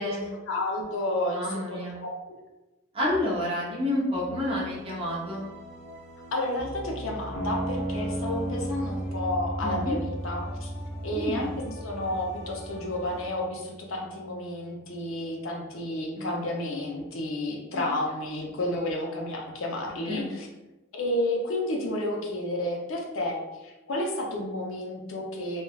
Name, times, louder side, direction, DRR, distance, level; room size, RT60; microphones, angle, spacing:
voice 1, 0.5-2.1 6.3-10.7 11.0-20.5 20.9-25.6, left 1 dB, 65° left, 0 dB, 0.5 m, -31 dB
voice 2, 1.3-1.9 2.9-5.4 9.6-10.0 11.1-11.5 16.2-16.3 17.7-17.8 20.1-20.3, left 1 dB, 25° right, -5 dB, 0.6 m, -29 dB
sound 1, 4.2-13.3, equal, 15° left, 0.9 m, -42 dB
sound 2, 7.3-13.3, right 1 dB, 5° right, 1.0 m, -35 dB
3.1 x 2.2 x 2.3 m, 1.1 s
head